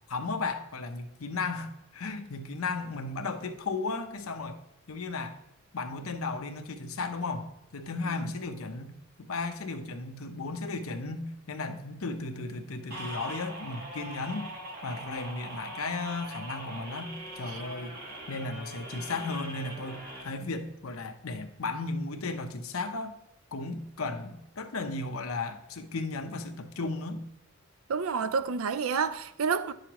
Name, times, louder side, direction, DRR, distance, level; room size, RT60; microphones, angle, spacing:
voice 1, 0.0-4.6 4.9-5.4 5.7-14.5 14.8-17.9 18.3-23.2 23.5-27.2, left 3 dB, 85° left, 0.8 m, -35 dB
sound 1, 12.9-20.2, right 1 dB, 45° right, 1.8 m, -42 dB
voice 2, 27.9-29.7, right 5 dB, 80° right, 0.5 m, -29 dB
9.9 x 6.6 x 3.0 m
head